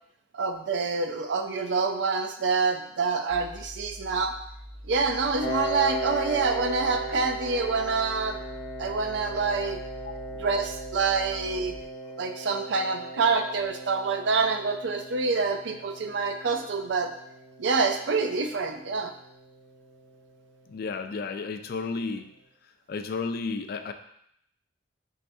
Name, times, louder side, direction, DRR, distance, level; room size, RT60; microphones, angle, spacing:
voice 1, 0.3-4.3 4.8-8.4 8.8-9.8 10.4-11.8 12.2-17.1 17.6-19.1, right 4 dB, 75° right, 6 dB, 0.5 m, -27 dB
sound 1, 3.3-11.8, equal, 15° right, 0.5 m, -44 dB
Piano, 5.4-20.7, right 1 dB, 75° left, 0.8 m, -38 dB
voice 2, 20.7-22.3 22.9-23.9, left 4 dB, 55° left, 8 dB, 0.3 m, -32 dB
5.5 x 3.2 x 2.7 m, 0.73 s
head